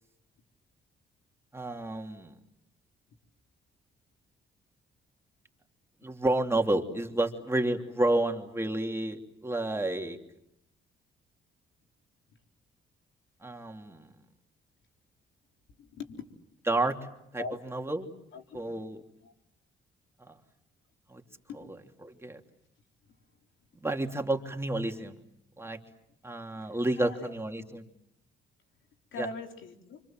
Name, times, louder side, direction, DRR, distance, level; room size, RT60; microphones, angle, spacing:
voice 1, 1.5-2.3 6.0-10.2 13.4-14.1 16.7-17.0 17.3-17.4 17.7-18.1 18.5-19.0 20.2-20.3 21.1-21.2 22.0-22.4 23.8-25.2 25.6-25.8 26.2-27.8 29.2-29.3, right 2 dB, 10° right, 3 dB, 3.1 m, -30 dB
voice 2, 15.8-16.2 17.4-17.6 18.3-18.6 19.2-19.3 21.5-21.6 26.6-27.8 29.1-30.0, left 4 dB, 75° left, 4 dB, 3.9 m, -42 dB
29.0 x 26.0 x 7.6 m, 0.79 s
cardioid pair, 90°, 20 cm